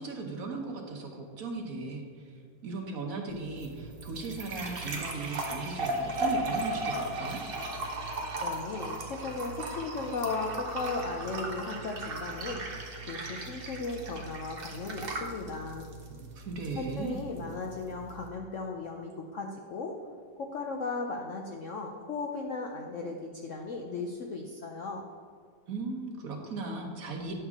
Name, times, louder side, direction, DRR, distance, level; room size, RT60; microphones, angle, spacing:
voice 1, 0.0-7.4 16.1-17.2 25.7-27.3, right 3 dB, 55° right, 2 dB, 1.2 m, -37 dB
sound 1, 3.3-18.3, right 2 dB, 40° right, 0.9 m, -37 dB
voice 2, 8.4-12.6 13.1-15.8 16.8-19.9 20.4-25.0, left 3 dB, 65° left, 1 dB, 0.7 m, -36 dB
10.0 x 6.6 x 3.6 m, 2.1 s
omnidirectional pair, 1.9 m